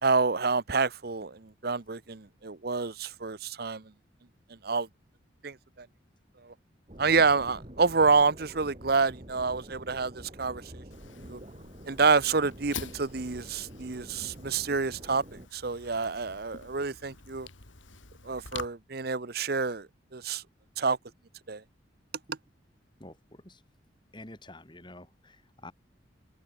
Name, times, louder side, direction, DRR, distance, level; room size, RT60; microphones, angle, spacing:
voice 1, 0.0-3.8 4.6-4.9 5.4-5.9 7.0-10.1 10.4-10.6 11.3-11.4 11.9-15.2 15.5-17.5 18.2-19.9 20.1-20.4 20.8-21.0 21.5-21.6, right 4 dB, 55° right, 0.9 m, -28 dB
sound 1, 6.9-15.5, equal, 35° right, 3.4 m, -47 dB
Fire, 10.9-18.6, left 5 dB, 90° left, 3.7 m, -46 dB
voice 2, 23.0-23.6 24.1-25.7, left 1 dB, 25° left, 5.7 m, -48 dB
head